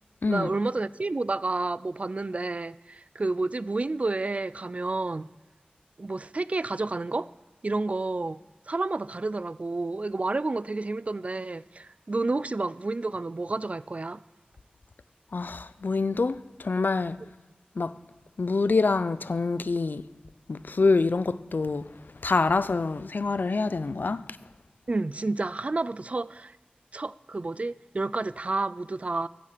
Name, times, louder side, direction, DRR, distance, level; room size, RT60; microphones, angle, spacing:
voice 1, 0.2-5.3 6.0-7.3 7.6-8.4 8.7-14.2 24.9-26.5 26.9-29.3, right 3 dB, 45° right, 0.3 m, -30 dB
voice 2, 15.3-17.2 17.8-18.0 18.4-20.1 20.5-24.3, left 3 dB, 70° left, 0.4 m, -26 dB
14.5 x 8.6 x 5.0 m
wide cardioid pair, 65°, 3 cm